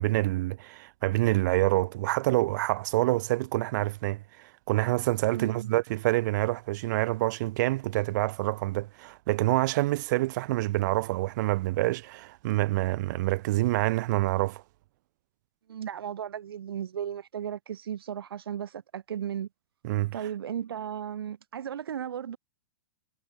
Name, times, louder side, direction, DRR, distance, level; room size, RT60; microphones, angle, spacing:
voice 1, 0.0-14.6 19.8-20.2, right 18 dB, 50° right, 0.4 m, -27 dB
voice 2, 5.3-5.7 15.7-19.5 20.1-22.4, right 9 dB, 75° right, 0.9 m, -35 dB
hypercardioid pair, 115°, 12 cm